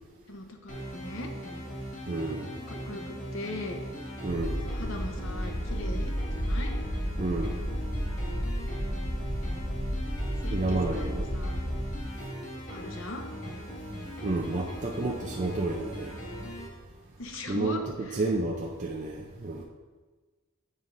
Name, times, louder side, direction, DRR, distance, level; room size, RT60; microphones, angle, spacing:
voice 1, 0.3-1.3 2.7-3.8 4.6-6.7 10.4-11.6 12.7-13.2 17.2-18.2, left 2 dB, 65° left, 4 dB, 0.9 m, -40 dB
sound 1, 0.7-16.7, equal, 35° left, 1.7 m, -40 dB
voice 2, 2.1-2.6 4.2-4.7 7.2-7.6 10.5-11.3 14.2-16.2 17.5-17.8 18.1-19.6, right 2 dB, 35° right, -1 dB, 0.5 m, -30 dB
sound 2, 4.3-12.0, equal, 20° left, 2.3 m, -32 dB
9.4 x 7.6 x 2.6 m, 1.3 s
head